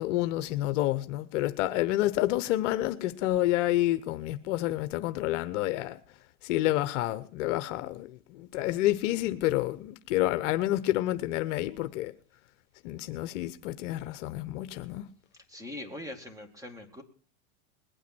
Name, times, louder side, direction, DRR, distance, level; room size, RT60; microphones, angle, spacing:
voice 1, 0.0-12.1 12.8-15.1, left 15 dB, 55° left, 0.9 m, -29 dB
voice 2, 15.5-17.0, left 1 dB, 10° right, 2.5 m, -42 dB
20.5 x 9.3 x 4.5 m
supercardioid pair, 130°, 44 cm